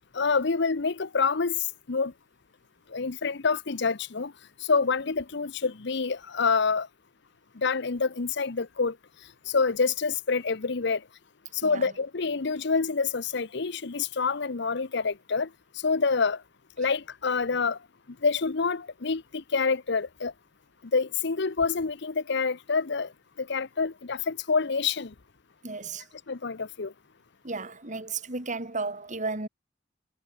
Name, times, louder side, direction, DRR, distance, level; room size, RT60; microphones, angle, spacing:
voice 1, 0.1-2.1 2.9-4.3 4.6-6.9 7.6-9.0 9.5-11.0 11.5-15.5 15.8-16.4 16.8-17.8 18.2-20.3 20.9-23.1 23.4-25.1 26.3-26.9, left 4 dB, 65° left, 0.9 m, -27 dB
voice 2, 11.6-11.9 25.6-26.1 27.4-29.5, right 3 dB, 40° right, 3.9 m, -34 dB
head